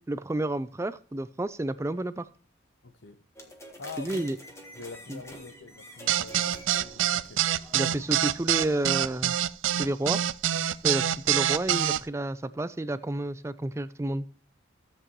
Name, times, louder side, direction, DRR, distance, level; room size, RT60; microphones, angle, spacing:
voice 1, 0.1-2.3 4.0-4.4 5.1-5.2 7.7-9.3 9.8-10.2 10.8-14.2, right 1 dB, 15° right, 0.3 m, -30 dB
voice 2, 2.8-3.2 3.8-4.4 4.7-7.5, left 3 dB, 75° left, 0.9 m, -44 dB
sound 1, 3.4-8.9, equal, 15° left, 1.5 m, -47 dB
sound 2, 6.1-12.0, right 11 dB, 90° right, 0.4 m, -25 dB
14.0 x 7.9 x 3.0 m
head